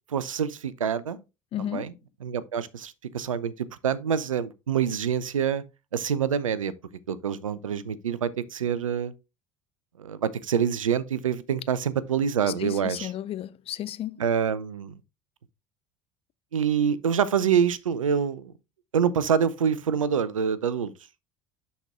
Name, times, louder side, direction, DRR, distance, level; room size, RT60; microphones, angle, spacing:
voice 1, 0.1-1.2 1.7-1.9 2.2-5.6 5.9-6.7 7.1-9.1 10.0-13.1 14.2-15.0 16.5-18.5 18.9-20.9, right 7 dB, 85° right, 0.5 m, -26 dB
voice 2, 1.5-1.9 12.6-14.2, left 12 dB, 35° left, 0.4 m, -33 dB
11.5 x 4.2 x 2.3 m
figure-of-eight pair, 70°, 17 cm